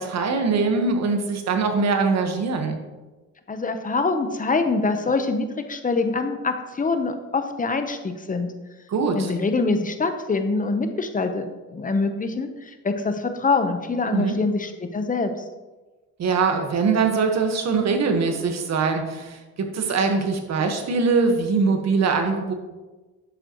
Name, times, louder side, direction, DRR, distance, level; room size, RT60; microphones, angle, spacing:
voice 1, 0.0-2.8 8.9-9.3 14.1-14.3 16.2-22.5, right 4 dB, 60° right, 5 dB, 1.4 m, -22 dB
voice 2, 3.5-8.5 9.1-15.3, left 3 dB, 25° left, 7 dB, 1.0 m, -24 dB
11.0 x 7.5 x 3.1 m, 1.2 s
cardioid pair, 90°, 30 cm